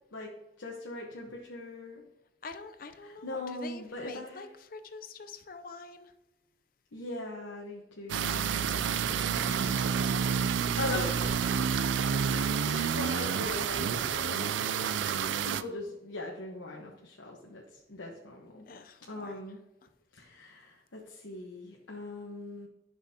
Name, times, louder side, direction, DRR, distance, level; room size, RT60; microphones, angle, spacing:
voice 1, 0.1-2.0 3.0-4.5 6.9-8.7 10.7-11.7 12.3-18.7 19.0-19.6 20.1-22.7, left 2 dB, 85° left, -2 dB, 1.1 m, -41 dB
voice 2, 2.4-6.1 8.6-9.9 18.7-19.4, left 4 dB, 50° left, 8 dB, 0.5 m, -46 dB
sound 1, 8.1-15.6, right 7 dB, 75° right, 0.4 m, -29 dB
11.5 x 6.2 x 2.8 m, 0.97 s
head